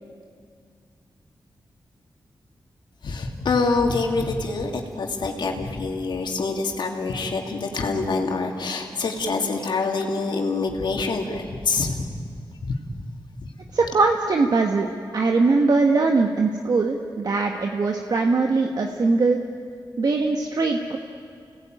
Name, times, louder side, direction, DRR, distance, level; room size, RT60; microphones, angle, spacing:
voice 1, 3.0-12.2 12.6-12.8 13.3-13.5, left 3 dB, 70° left, 2 dB, 2.8 m, -26 dB
voice 2, 13.7-14.9 15.1-19.4 20.0-21.0, right 3 dB, 55° right, 3 dB, 1.5 m, -21 dB
29.5 x 18.5 x 9.3 m, 2.2 s
wide cardioid pair, 105°, 8 cm